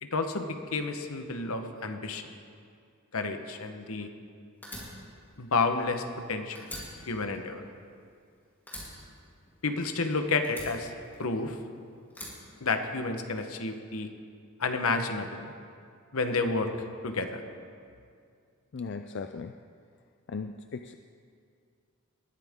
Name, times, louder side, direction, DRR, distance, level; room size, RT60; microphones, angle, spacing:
voice 1, 0.0-2.3 3.1-4.1 5.4-6.7 7.1-7.6 9.6-10.9 11.2-11.6 12.6-14.1 14.6-15.5 16.1-16.7 17.0-17.4, left 3 dB, 75° left, 7 dB, 1.1 m, -30 dB
Fire, 4.6-6.2 6.5-8.3 8.7-10.0 10.4-11.6 12.1-13.3, left 1 dB, 10° left, 3.3 m, -45 dB
voice 2, 18.7-19.6 20.3-21.0, left 4 dB, 50° left, 7 dB, 0.4 m, -37 dB
20.5 x 14.0 x 3.7 m, 2.3 s
head